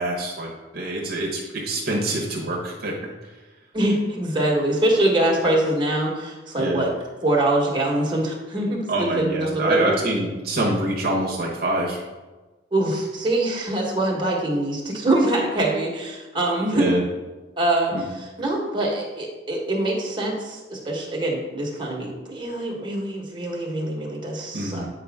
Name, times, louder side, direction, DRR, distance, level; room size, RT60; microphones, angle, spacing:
voice 1, 0.0-2.9 6.6-6.9 8.9-12.0 16.7-17.0 17.9-18.0 24.5-24.9, right 1 dB, 55° right, -2 dB, 1.1 m, -25 dB
voice 2, 3.7-6.9 7.2-9.9 12.7-16.9 17.6-24.9, right 1 dB, 25° right, -2 dB, 1.4 m, -24 dB
8.4 x 5.0 x 3.6 m, 1.2 s
head